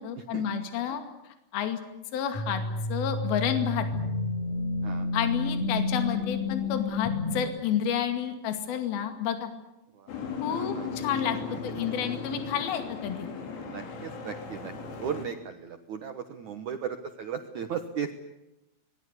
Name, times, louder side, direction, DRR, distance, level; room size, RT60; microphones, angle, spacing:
voice 1, 0.0-1.8 2.1-2.6 2.9-3.9 5.1-9.5 10.4-13.3, left 9 dB, 60° left, 7 dB, 3.9 m, -30 dB
sound 1, 2.3-7.4, left 3 dB, 40° left, 7.0 m, -30 dB
Boat Water vehicle, 10.1-15.3, left 5 dB, 80° left, 6.0 m, -37 dB
voice 2, 10.5-10.9 13.6-14.7 15.0-18.1, right 7 dB, 75° right, 7 dB, 1.7 m, -36 dB
26.0 x 21.5 x 8.2 m, 0.89 s
omnidirectional pair, 5.4 m